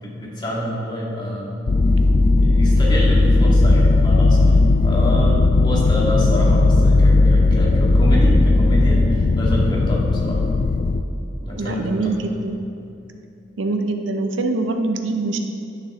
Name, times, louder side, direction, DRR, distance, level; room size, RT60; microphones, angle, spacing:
voice 1, 0.0-1.5 2.3-4.6 4.8-10.4 11.4-12.1, equal, 25° left, -5 dB, 2.1 m, -27 dB
sound 1, 1.7-11.0, left 2 dB, 45° left, 0.3 m, -16 dB
voice 2, 11.5-12.6 13.6-15.4, right 2 dB, 80° right, 6 dB, 0.7 m, -24 dB
11.5 x 6.7 x 3.8 m, 2.7 s
head